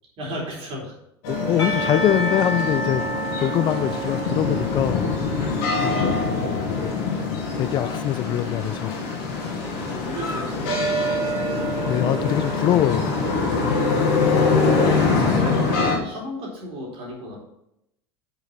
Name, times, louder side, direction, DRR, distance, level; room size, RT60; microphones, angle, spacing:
voice 1, 0.2-0.9 5.9-6.9 9.5-11.5 14.7-17.4, equal, 40° right, -2 dB, 3.8 m, -35 dB
sound 1, 1.2-16.0, left 3 dB, 55° left, 2.5 m, -24 dB
voice 2, 1.3-3.0 3.4-5.1 6.7-7.0 7.3-9.0 11.9-13.1, left 12 dB, 30° left, 14 dB, 0.4 m, -23 dB
Percussion / Church bell, 1.6-6.6, right 1 dB, 75° left, 2.5 m, -30 dB
8.4 x 6.8 x 4.1 m, 0.80 s
figure-of-eight pair, 75°, 15 cm